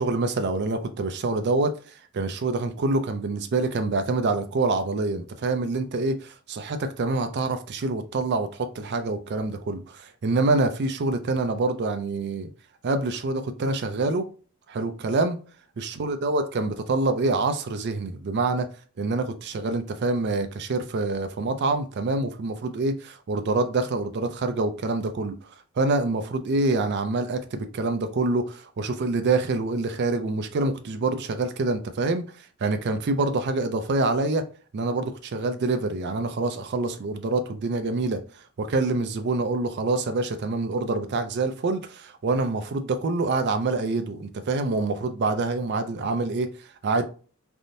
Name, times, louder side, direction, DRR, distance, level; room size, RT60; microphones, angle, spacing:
voice 1, 0.0-1.8 2.1-12.5 12.8-14.3 14.7-15.4 15.8-18.7 19.0-25.4 25.8-34.4 34.7-38.2 38.6-47.1, right 3 dB, 50° right, 0.4 m, -26 dB
3.4 x 2.6 x 2.6 m
head